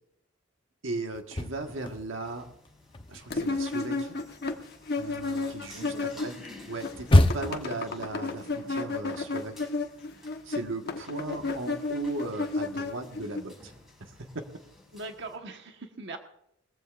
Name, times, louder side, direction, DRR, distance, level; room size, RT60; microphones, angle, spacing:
voice 1, 0.8-2.5 3.1-4.2 5.0-6.4 6.7-9.6 10.4-13.7 14.0-14.5, right 2 dB, 80° right, 5 dB, 1.5 m, -37 dB
sound 1, 1.1-2.3 2.6-7.7, left 1 dB, 25° left, 0.8 m, -27 dB
sound 2, 1.5-15.4, left 2 dB, ahead, 5.7 m, -53 dB
sound 3, 3.3-6.5 6.7-13.4, left 3 dB, 55° left, 1.2 m, -32 dB
voice 2, 5.7-6.3 14.9-16.2, right 3 dB, 60° right, 4 dB, 1.4 m, -42 dB
21.0 x 15.0 x 2.5 m, 0.76 s
head